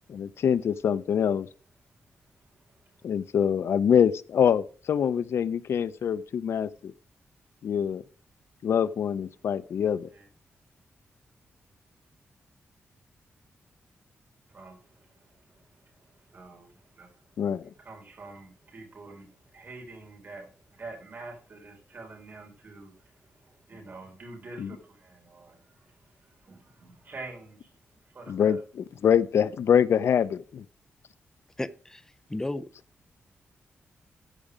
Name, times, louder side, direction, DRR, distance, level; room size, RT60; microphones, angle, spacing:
voice 1, 0.1-1.5 3.0-6.9 7.6-8.0 8.6-10.1 17.4-17.7 24.6-24.7 28.3-28.6 29.0-30.6, left 8 dB, 70° left, 0.5 m, -24 dB
voice 2, 2.5-3.1 10.1-10.3 14.5-17.2 17.8-27.7 28.0-28.6, right 3 dB, 45° right, 4.3 m, -47 dB
voice 3, 31.6-32.7, left 2 dB, 10° left, 0.6 m, -34 dB
14.5 x 4.9 x 5.0 m
wide cardioid pair, 130°, 5 cm